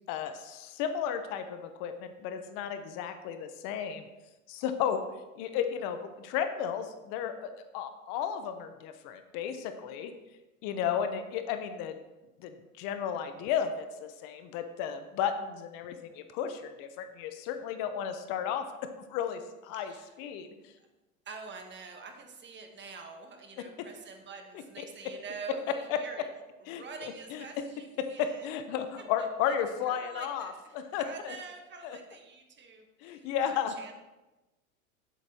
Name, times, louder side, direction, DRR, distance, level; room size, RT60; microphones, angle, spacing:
voice 1, 0.1-4.1 4.5-5.0 5.4-10.1 10.6-11.9 12.4-19.9 20.2-20.5 23.8-23.9 25.9-26.0 26.7-27.4 28.0-31.3 31.8-32.0 33.0-33.7, left 8 dB, 55° left, 9 dB, 0.8 m, -34 dB
voice 2, 19.7-20.2 20.8-20.9 21.2-26.3 26.6-28.5 29.2-29.3 29.9-34.0, right 5 dB, 25° right, 4 dB, 1.2 m, -46 dB
8.8 x 8.0 x 2.9 m, 1.1 s
hypercardioid pair, 105°, 42 cm